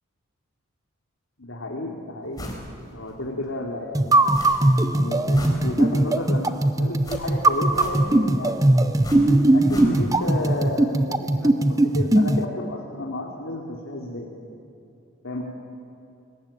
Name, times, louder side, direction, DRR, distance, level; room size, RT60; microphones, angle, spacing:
voice 1, 1.4-2.4 2.9-4.3 4.9-6.5 6.8-8.9 9.5-14.3 15.2-15.4, left 1 dB, 70° left, -1 dB, 3.0 m, -32 dB
sound 1, 2.4-2.7 3.1-3.2 4.3-4.8 5.1-6.1 7.0-8.3 9.0-10.3 10.5-10.6, left 1 dB, 20° left, 4.6 m, -38 dB
sound 2, 3.9-12.4, right 1 dB, 15° right, 0.8 m, -20 dB
30.0 x 22.0 x 8.8 m, 2.7 s
head